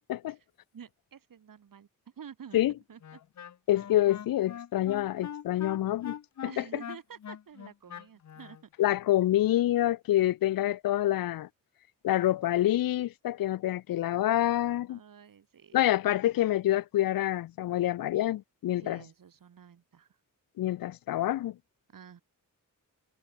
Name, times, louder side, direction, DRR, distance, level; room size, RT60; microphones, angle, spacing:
voice 1, 0.7-1.9 2.2-2.6 2.9-3.2 6.4-8.9 14.9-15.8 18.7-20.1 21.9-22.2, right 7 dB, 70° right, 3.4 m, -49 dB
Wind instrument woodwind instrument, 3.0-8.6, left 9 dB, 55° left, 0.8 m, -42 dB
voice 2, 3.7-6.1 6.6-6.7 8.8-11.5 12.0-15.0 15.7-19.0 20.6-21.6, left 13 dB, 85° left, 0.5 m, -27 dB
wide cardioid pair, 160°, 34 cm